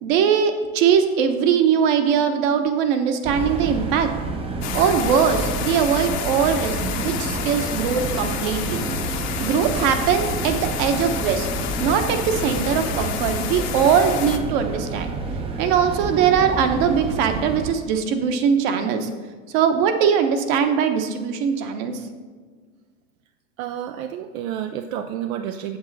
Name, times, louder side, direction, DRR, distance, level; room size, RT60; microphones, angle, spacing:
voice 1, 0.0-4.1 4.7-8.8 9.4-11.5 11.8-15.1 15.6-19.1 19.5-22.0, right 7 dB, 60° right, 7 dB, 1.1 m, -21 dB
sound 1, 3.2-17.7, right 3 dB, 15° right, 0.5 m, -29 dB
sound 2, 4.6-14.4, left 8 dB, 40° left, 0.8 m, -30 dB
voice 2, 23.6-25.8, right 10 dB, 85° right, 7 dB, 0.6 m, -30 dB
7.7 x 7.1 x 4.1 m, 1.5 s
supercardioid pair, 120°, 41 cm